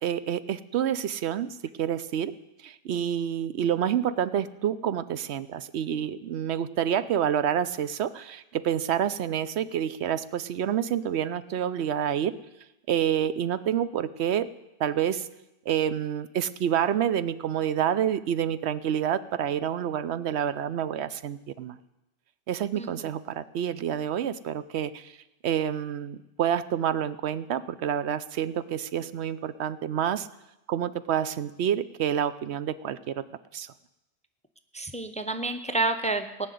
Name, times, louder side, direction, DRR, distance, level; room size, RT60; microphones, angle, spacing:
voice 1, 0.0-2.3 2.6-12.3 12.9-14.5 14.8-15.3 15.7-21.8 22.5-25.1 25.4-30.3 30.7-33.2 33.5-33.7, right 9 dB, 85° right, 14 dB, 0.9 m, -28 dB
voice 2, 34.7-36.5, right 2 dB, 10° left, 9 dB, 0.6 m, -29 dB
18.5 x 6.3 x 9.2 m, 0.94 s
omnidirectional pair, 1.1 m